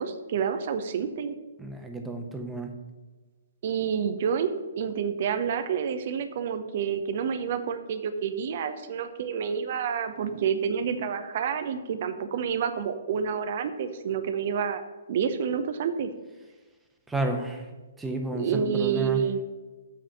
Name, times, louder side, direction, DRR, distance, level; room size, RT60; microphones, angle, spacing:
voice 1, 0.0-1.3 3.6-16.1 18.3-19.4, right 7 dB, 45° right, 9 dB, 0.8 m, -29 dB
voice 2, 1.6-2.7 17.1-17.7 18.0-19.2, right 2 dB, 5° right, 3 dB, 1.1 m, -31 dB
7.9 x 5.0 x 7.2 m, 1.3 s
figure-of-eight pair, 125°, 0 cm